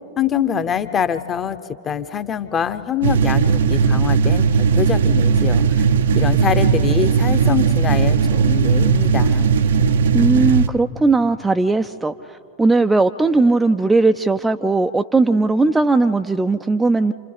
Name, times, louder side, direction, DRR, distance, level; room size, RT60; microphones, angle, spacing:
voice 1, 0.2-1.6 1.8-5.8 6.2-9.5, left 8 dB, 25° left, 12 dB, 0.8 m, -24 dB
sound 1, 3.0-10.7, right 6 dB, 60° right, 0.5 m, -17 dB
voice 2, 10.1-12.1 12.6-17.1, right 3 dB, 10° right, 8 dB, 0.4 m, -17 dB
28.5 x 27.0 x 3.4 m, 2.7 s
figure-of-eight pair, 90°, 0 cm